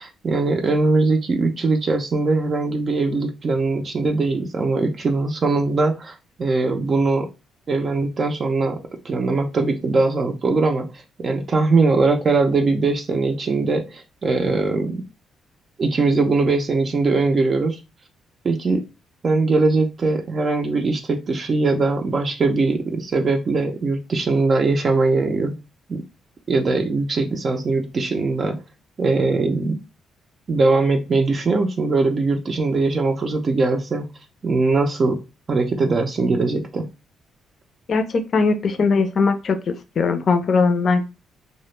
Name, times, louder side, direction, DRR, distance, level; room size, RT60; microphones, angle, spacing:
voice 1, 0.0-7.3 7.7-8.8 9.0-10.9 11.2-15.0 15.8-17.8 18.4-18.8 19.2-25.6 25.9-26.0 26.5-28.6 29.0-29.8 30.5-34.0 34.4-35.2 35.5-36.9, right 3 dB, 40° right, 3 dB, 0.4 m, -21 dB
voice 2, 37.9-39.6 40.0-41.0, left 4 dB, 50° left, 8 dB, 0.5 m, -19 dB
2.1 x 2.0 x 3.1 m, 0.28 s
cardioid pair, 90°, 0 cm